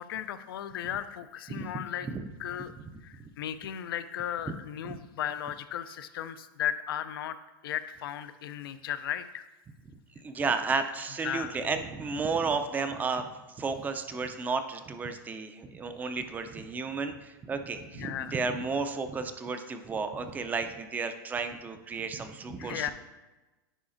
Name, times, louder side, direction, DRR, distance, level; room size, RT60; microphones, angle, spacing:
voice 1, 0.0-2.1 2.4-2.7 3.0-7.4 7.6-9.5 11.2-11.6 17.9-18.3 22.6-22.9, left 10 dB, 85° left, 12 dB, 0.4 m, -35 dB
voice 2, 1.5-1.8 2.1-2.2 4.5-4.6 4.9-5.0 10.2-13.3 13.6-22.9, right 4 dB, 15° right, 8 dB, 0.4 m, -32 dB
9.9 x 4.8 x 2.5 m, 1.1 s
supercardioid pair, 140°, 12 cm